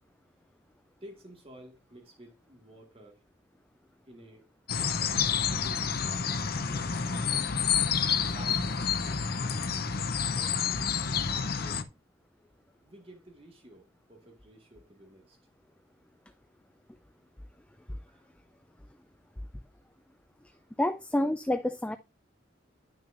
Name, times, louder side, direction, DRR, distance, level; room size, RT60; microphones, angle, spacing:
voice 1, 1.0-3.3 4.1-6.0 6.6-7.4 8.2-9.7 10.2-10.6 11.2-11.9 12.8-15.4 18.1-18.3 20.5-20.6, right 1 dB, 30° right, 1.8 m, -53 dB
sound 1, 4.7-11.8, left 6 dB, 55° left, 0.7 m, -29 dB
voice 2, 20.8-22.0, left 1 dB, 5° left, 0.4 m, -28 dB
10.5 x 6.1 x 2.6 m
head